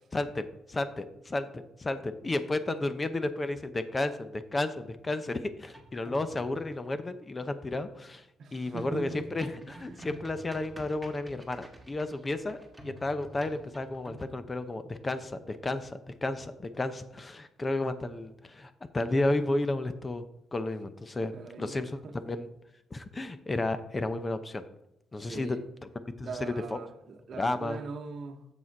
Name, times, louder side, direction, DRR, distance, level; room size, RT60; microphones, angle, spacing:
voice 1, 0.1-8.2 8.5-12.6 12.8-20.2 20.5-21.3 21.6-22.0 22.3-22.5 22.9-24.6 25.1-25.6 26.2-26.8 27.4-27.8, left 2 dB, 25° left, 0.7 m, -32 dB
sound 1, 5.7-6.8 8.8-14.3, equal, 5° right, 1.9 m, -49 dB
voice 2, 8.4-10.1 21.3-22.3 25.2-25.6 26.2-28.5, right 4 dB, 60° right, 1.0 m, -42 dB
7.4 x 6.1 x 4.6 m
cardioid pair, 90°, 0 cm